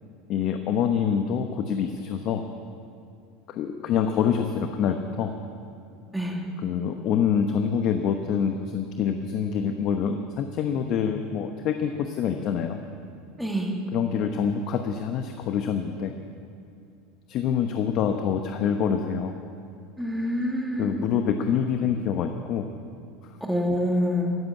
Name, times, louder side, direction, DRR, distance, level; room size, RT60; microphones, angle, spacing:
voice 1, 0.3-2.4 3.5-5.3 6.6-12.8 13.9-16.1 17.3-19.4 20.8-22.6, left 7 dB, 50° left, 6 dB, 0.9 m, -26 dB
voice 2, 6.1-6.5 13.4-13.8 20.0-21.1 23.4-24.4, equal, ahead, 1 dB, 2.2 m, -26 dB
15.5 x 7.7 x 9.4 m, 2.5 s
supercardioid pair, 105°, 0 cm